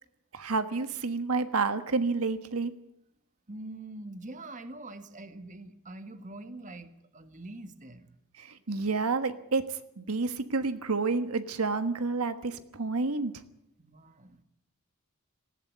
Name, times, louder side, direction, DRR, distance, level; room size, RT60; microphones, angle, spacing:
voice 1, 0.3-2.7 8.4-13.4, right 4 dB, 85° right, 10 dB, 1.4 m, -29 dB
voice 2, 3.5-8.2 13.8-14.4, right 2 dB, 35° right, 9 dB, 1.6 m, -44 dB
19.0 x 15.0 x 9.6 m, 0.79 s
head